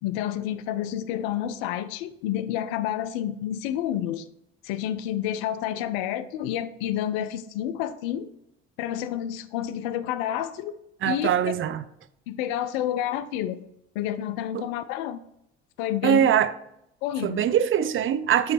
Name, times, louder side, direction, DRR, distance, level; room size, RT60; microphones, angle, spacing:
voice 1, 0.0-4.3 4.6-8.3 8.8-10.8 11.0-11.3 12.3-13.6 13.9-15.2 15.8-16.3 17.0-17.5, left 11 dB, 75° left, 14 dB, 0.5 m, -29 dB
voice 2, 11.0-11.8 14.5-14.6 16.0-16.5 17.2-18.5, right 10 dB, 40° right, 13 dB, 0.5 m, -22 dB
7.8 x 3.1 x 4.3 m, 0.80 s
hypercardioid pair, 55°, 31 cm